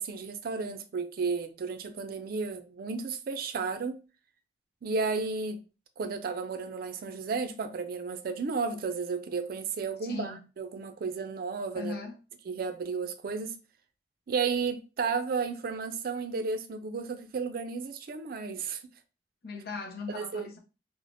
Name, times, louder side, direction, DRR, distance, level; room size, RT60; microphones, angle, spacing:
voice 1, 0.0-4.0 4.8-5.6 6.0-12.0 12.5-13.6 14.3-18.8 20.1-20.4, right 5 dB, 55° right, 0.4 m, -33 dB
voice 2, 10.0-10.4 11.7-12.2 19.4-20.6, left 4 dB, 60° left, 0.6 m, -38 dB
3.2 x 2.0 x 2.5 m
head